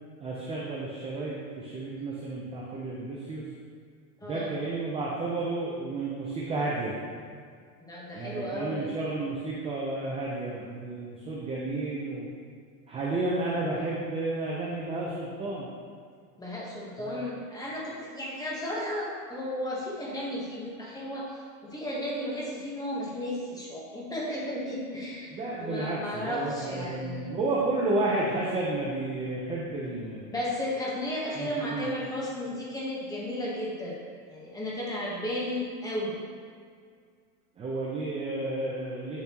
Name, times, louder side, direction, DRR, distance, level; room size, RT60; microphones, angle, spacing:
voice 1, 0.2-3.5 4.2-6.9 8.1-12.3 12.9-15.7 17.0-17.2 25.3-30.2 31.4-31.9 37.6-39.2, right 2 dB, 15° right, -5 dB, 0.7 m, -32 dB
voice 2, 7.9-8.9 16.4-25.3 25.6-27.4 30.3-34.0 34.3-36.2, left 1 dB, 10° left, -5 dB, 1.2 m, -34 dB
7.9 x 7.1 x 3.0 m, 2.1 s
supercardioid pair, 150°, 45 cm